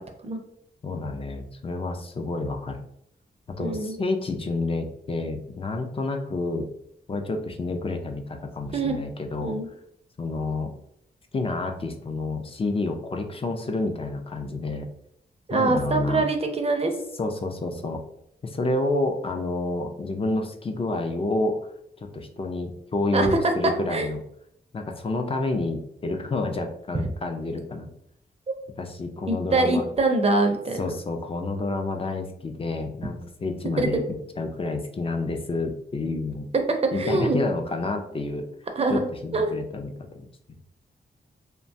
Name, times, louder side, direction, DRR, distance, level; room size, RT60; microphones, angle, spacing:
voice 1, 0.8-2.8 3.6-6.7 7.1-9.6 10.2-10.7 11.3-14.9 15.5-16.2 17.2-18.0 18.4-21.6 22.0-24.2 24.7-27.9 28.8-29.8 30.8-34.0 34.4-36.5 36.9-38.4 38.9-40.2, left 2 dB, 30° left, 4 dB, 0.4 m, -29 dB
voice 2, 3.6-4.0 8.7-9.0 9.4-9.7 15.5-16.9 23.1-23.4 23.9-24.1 26.9-27.1 29.3-30.8 33.8-34.0 36.9-37.4 38.8-39.1 39.3-39.5, right 2 dB, 35° right, 5 dB, 0.4 m, -24 dB
2.9 x 2.2 x 2.6 m, 0.74 s
wide cardioid pair, 110°, 18 cm